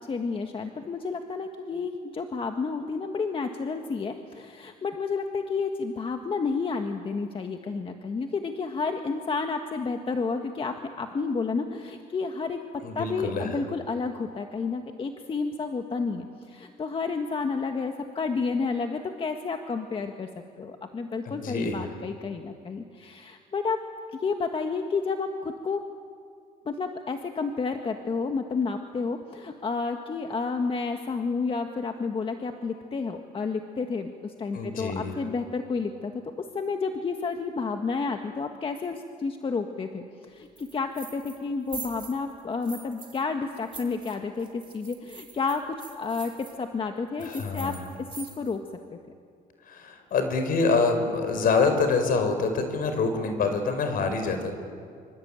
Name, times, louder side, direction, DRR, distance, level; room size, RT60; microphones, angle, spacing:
voice 1, 0.1-12.6 12.9-20.3 20.6-23.8 24.1-25.8 26.6-36.2 36.5-47.7 48.2-48.6, left 4 dB, 30° left, 5 dB, 1.7 m, -30 dB
voice 2, 12.8-13.6 21.3-21.9 34.5-35.1 47.2-47.8 49.6-54.6, left 4 dB, 60° left, 7 dB, 5.2 m, -26 dB
sound 1, 40.6-41.4 41.7-43.2 43.5-46.5 47.2-48.6, right 5 dB, 30° right, 4.8 m, -43 dB
26.5 x 25.0 x 9.0 m, 2.3 s
cardioid pair, 110°, 17 cm